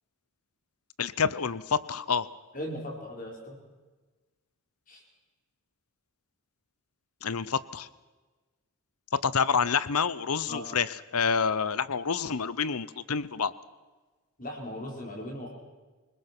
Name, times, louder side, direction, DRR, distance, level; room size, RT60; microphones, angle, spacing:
voice 1, 1.0-2.3 7.2-7.9 9.1-13.5, left 6 dB, 80° left, 17 dB, 0.9 m, -28 dB
voice 2, 2.5-3.6 4.9-5.0 10.5-10.7 14.4-15.5, left 1 dB, 35° left, 0 dB, 4.9 m, -38 dB
27.0 x 20.5 x 6.1 m, 1.3 s
head